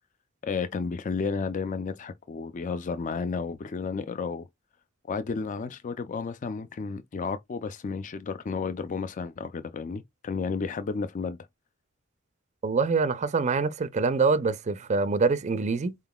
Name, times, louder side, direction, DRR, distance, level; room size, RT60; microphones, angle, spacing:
voice 1, 0.4-4.5 5.0-11.4, left 5 dB, 35° left, 0.4 m, -32 dB
voice 2, 12.6-16.0, right 4 dB, 35° right, 0.4 m, -25 dB
4.3 x 3.7 x 2.3 m
head